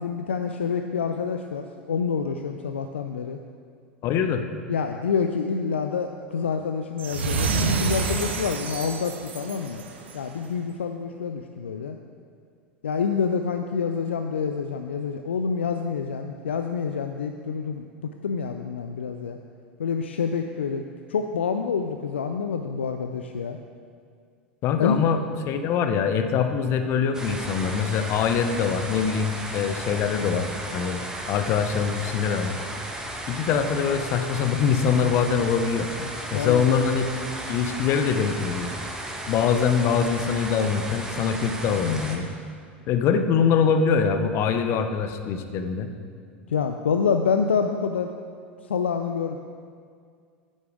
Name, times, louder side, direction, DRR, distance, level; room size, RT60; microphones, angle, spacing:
voice 1, 0.0-3.4 4.7-12.0 12.8-19.4 19.8-23.6 24.8-25.0 36.0-36.7 46.5-48.1 48.6-49.4, left 6 dB, 80° left, 6 dB, 0.4 m, -27 dB
voice 2, 4.0-4.4 24.6-31.0 31.3-32.5 33.3-35.9 36.3-37.1 37.5-38.7 39.3-42.3 42.9-45.9, left 6 dB, 45° left, 8 dB, 0.8 m, -23 dB
sound 1, 7.0-10.3, right 4 dB, 75° right, 1.0 m, -28 dB
sound 2, 27.1-42.2, right 1 dB, 10° right, 1.4 m, -35 dB
9.7 x 8.2 x 4.9 m, 2.1 s
figure-of-eight pair, 85°, 6 cm